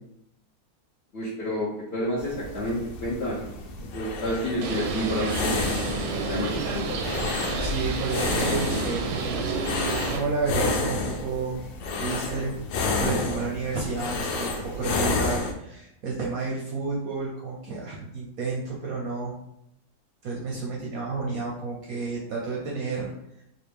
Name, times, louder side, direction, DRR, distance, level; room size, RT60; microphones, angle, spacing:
voice 1, 1.1-3.5 3.8-7.0, equal, 60° left, -7 dB, 0.6 m, -30 dB
sound 1, 2.2-15.5, left 3 dB, 75° left, 1.2 m, -30 dB
Bird, 4.6-10.2, right 3 dB, 90° right, 1.4 m, -30 dB
voice 2, 7.6-9.8 10.1-11.6 11.9-12.6 13.0-19.3 20.2-23.1, right 4 dB, 65° right, -3 dB, 0.9 m, -31 dB
4.1 x 2.4 x 3.4 m, 0.82 s
omnidirectional pair, 2.0 m